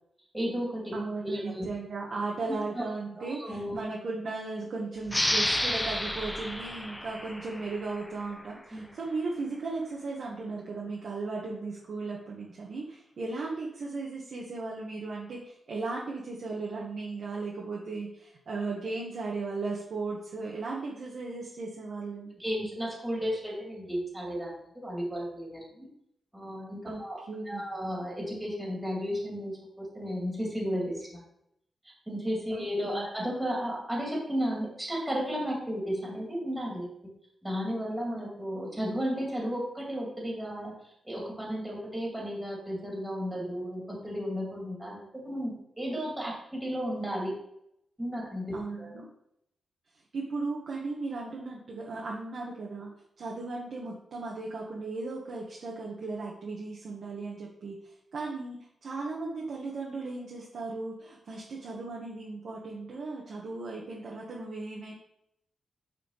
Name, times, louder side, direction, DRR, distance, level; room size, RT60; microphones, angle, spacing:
voice 1, 0.3-0.9 1.2-1.6 2.7-2.8 3.2-3.7 8.7-8.8 22.4-25.9 26.3-27.2 27.5-31.2 32.1-36.9 37.4-40.7 41.0-47.3 48.0-48.9, equal, 10° right, -3 dB, 2.7 m, -33 dB
voice 2, 0.9-22.3 26.8-27.0 27.3-27.6 32.5-32.6 32.9-33.1 48.5-49.1 50.1-64.9, right 3 dB, 60° right, -3 dB, 1.3 m, -36 dB
sound 1, 5.1-8.3, left 1 dB, 10° left, 0.5 m, -31 dB
8.9 x 4.3 x 4.1 m, 0.77 s
wide cardioid pair, 130°, 0 cm